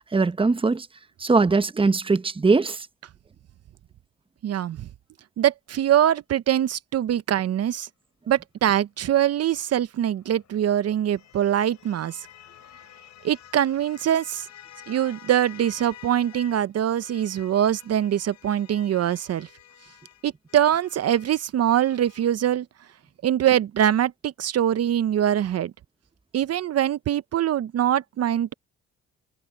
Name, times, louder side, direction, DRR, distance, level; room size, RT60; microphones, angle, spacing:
voice 1, 0.1-0.9 1.2-2.9, right 4 dB, 20° right, 1.0 m, -21 dB
voice 2, 4.4-4.9 5.4-7.9 8.3-12.3 13.2-14.5 14.9-19.5 20.2-22.7 23.2-25.7 26.3-28.5, right 10 dB, 55° right, 0.9 m, -23 dB
sound 1, 10.0-16.7 17.0-22.4, left 11 dB, 65° left, 4.7 m, -49 dB
supercardioid pair, 60°, 30 cm